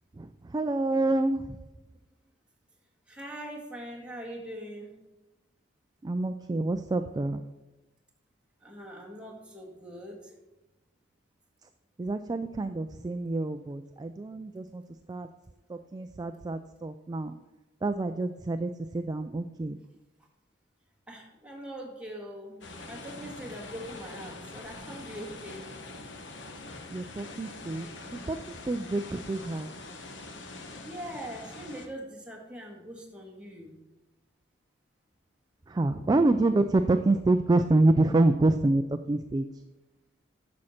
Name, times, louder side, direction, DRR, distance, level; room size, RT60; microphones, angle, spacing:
voice 1, 0.2-1.6 6.0-7.4 12.0-14.8 15.1-15.3 15.7-17.3 17.8-19.8 26.9-28.4 28.7-29.7 35.7-39.5, right 2 dB, 20° right, 8 dB, 0.3 m, -27 dB
voice 2, 3.1-5.0 8.6-10.4 21.1-25.6 30.8-33.7 35.9-36.0, right 1 dB, 5° right, -2 dB, 1.7 m, -42 dB
sound 1, 22.6-31.9, left 2 dB, 80° left, 1.1 m, -44 dB
10.5 x 6.3 x 4.3 m, 1.0 s
head